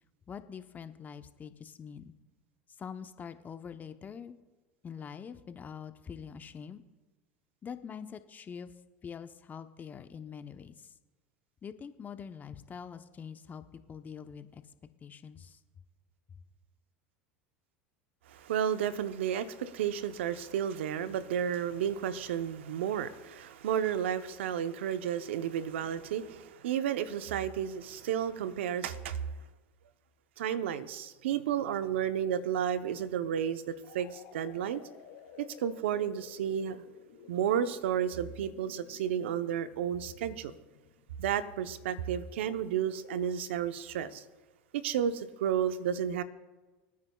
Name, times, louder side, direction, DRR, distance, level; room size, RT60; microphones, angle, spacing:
voice 1, 0.3-2.1 2.8-4.4 4.8-6.8 7.6-8.7 9.0-10.9 11.6-15.6, left 7 dB, 30° left, 0.8 m, -45 dB
voice 2, 18.3-29.2 30.4-34.8 35.4-36.8 37.3-40.5 41.2-44.2 44.7-46.2, right 9 dB, 80° right, 0.8 m, -32 dB
sound 1, 33.8-41.5, left 8 dB, 75° left, 2.2 m, -55 dB
24.5 x 9.5 x 2.3 m
hypercardioid pair, 95°, 6 cm